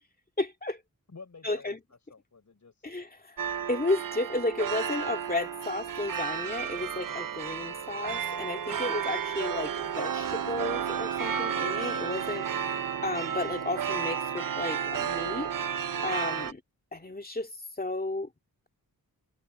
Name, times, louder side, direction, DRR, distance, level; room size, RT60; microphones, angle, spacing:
voice 1, 0.4-0.8 1.4-1.8 2.8-3.4 3.7-12.4 13.0-16.6 16.9-17.5 17.8-18.3, left 2 dB, 25° left, 2.2 m, -33 dB
voice 2, 1.1-1.7 2.1-2.9 6.8-7.1 8.7-9.1 12.1-12.5 16.4-16.5, left 4 dB, 50° left, 4.7 m, -51 dB
sound 1, 3.4-16.5, right 8 dB, 60° right, 0.7 m, -32 dB
wide cardioid pair, 110°, 37 cm